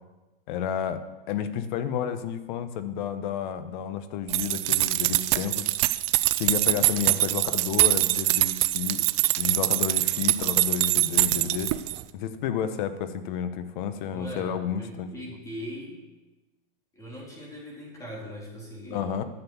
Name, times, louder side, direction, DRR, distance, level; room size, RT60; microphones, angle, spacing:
voice 1, 0.5-5.7 6.4-9.0 9.4-11.7 12.1-15.2 18.9-19.2, left 8 dB, 55° left, 11 dB, 1.1 m, -31 dB
sound 1, 4.3-12.0, right 19 dB, 30° right, 0.4 m, -24 dB
voice 2, 6.6-7.2 14.1-16.0 16.9-19.1, equal, 10° left, -3 dB, 3.3 m, -41 dB
12.0 x 6.7 x 7.1 m, 1.1 s
supercardioid pair, 150°, 29 cm